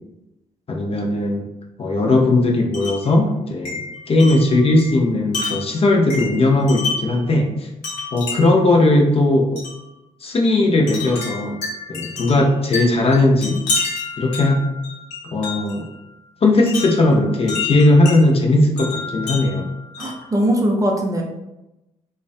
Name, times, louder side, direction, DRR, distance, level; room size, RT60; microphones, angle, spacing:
voice 1, 0.7-1.4 1.8-3.8 4.1-7.7 8.1-9.6 10.2-11.6 11.9-13.6 14.2-14.6 15.3-15.8 16.4-19.7, left 2 dB, 35° left, 1 dB, 0.5 m, -17 dB
Wind chime, 2.7-3.1 3.7-7.2 7.8-8.7 9.6-9.8 10.9-15.8 16.7-18.2 18.8-20.3, left 4 dB, 70° left, 0.8 m, -29 dB
voice 2, 20.0-21.2, equal, 20° right, 0 dB, 0.5 m, -20 dB
2.4 x 2.2 x 2.4 m, 0.93 s
figure-of-eight pair, 40°, 18 cm